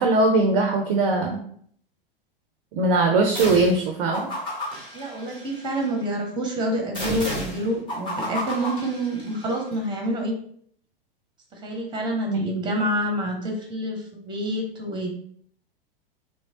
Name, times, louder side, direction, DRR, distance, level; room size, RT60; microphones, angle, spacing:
voice 1, 0.0-1.4 2.7-4.3 12.3-12.5, right 2 dB, 35° right, 3 dB, 0.5 m, -20 dB
sound 1, 3.3-3.8 4.1-5.9 6.9-9.5, equal, 15° left, 1.2 m, -32 dB
voice 2, 4.9-10.4 11.5-15.1, right 1 dB, 15° right, 2 dB, 0.9 m, -27 dB
3.1 x 3.1 x 2.8 m, 0.62 s
figure-of-eight pair, 90°, 29 cm